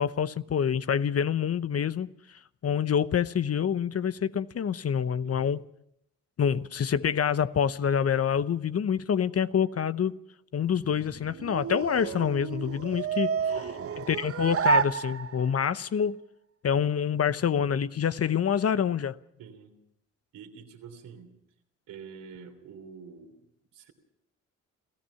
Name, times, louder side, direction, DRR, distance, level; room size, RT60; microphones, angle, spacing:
voice 1, 0.0-5.6 6.4-10.2 10.5-13.6 14.1-16.2 16.6-19.2, left 8 dB, 45° left, 0.9 m, -27 dB
sound 1, 10.7-15.7, right 5 dB, 45° right, 1.1 m, -30 dB
voice 2, 13.3-14.2 19.4-19.8 20.3-21.3 21.9-23.3 23.7-23.9, right 6 dB, 75° right, 3.3 m, -46 dB
29.0 x 15.0 x 5.8 m
supercardioid pair, 50°, 34 cm